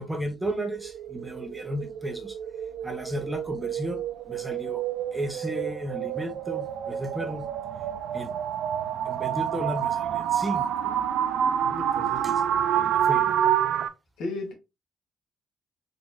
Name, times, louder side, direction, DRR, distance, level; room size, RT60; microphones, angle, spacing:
voice 1, 0.0-2.3 2.8-4.0 4.3-4.8 5.1-7.5 8.1-8.3 9.1-10.9 12.0-13.3, right 1 dB, 5° right, 0.6 m, -34 dB
sound 1, 0.6-13.9, right 10 dB, 80° right, 0.4 m, -28 dB
voice 2, 11.6-12.1 14.2-14.5, left 2 dB, 90° left, 1.2 m, -34 dB
3.9 x 3.0 x 2.5 m
cardioid pair, 170°, 0 cm